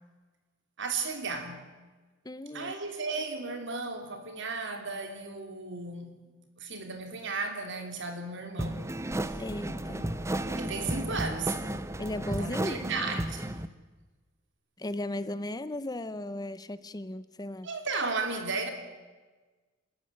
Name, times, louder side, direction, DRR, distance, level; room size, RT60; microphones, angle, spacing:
voice 1, 0.8-1.7 2.5-6.2 6.6-8.9 9.3-9.4 10.6-11.7 12.4-13.6 17.6-18.7, right 4 dB, 60° right, 5 dB, 3.1 m, -35 dB
voice 2, 2.2-2.7 9.4-10.1 12.0-12.8 14.8-17.7, left 1 dB, 20° left, 14 dB, 0.7 m, -36 dB
sound 1, 8.6-13.7, right 1 dB, 15° right, 0.9 m, -33 dB
sound 2, 9.1-13.1, equal, 45° right, 2.1 m, -46 dB
27.0 x 14.0 x 9.7 m, 1.3 s
head